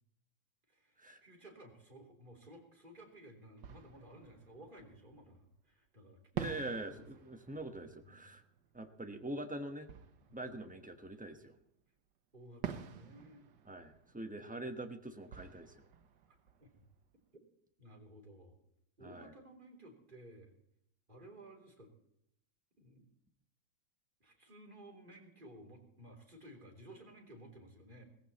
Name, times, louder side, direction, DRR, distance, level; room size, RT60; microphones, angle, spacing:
voice 1, 0.7-6.2 6.4-7.4 7.7-8.3 10.3-10.5 12.3-13.5 16.3-16.8 17.8-18.6 19.0-20.5 21.1-21.9 22.8-23.1 24.2-28.0, right 1 dB, 25° right, 0 dB, 3.5 m, -56 dB
Fireworks, 3.6-5.6 6.4-11.7 12.6-17.4, right 8 dB, 65° right, 1.7 m, -48 dB
voice 2, 6.3-8.4 8.7-9.9 10.3-11.6 13.7-15.9 19.0-19.3, right 1 dB, 5° right, 5 dB, 0.9 m, -44 dB
18.0 x 15.0 x 4.2 m, 0.74 s
omnidirectional pair, 2.1 m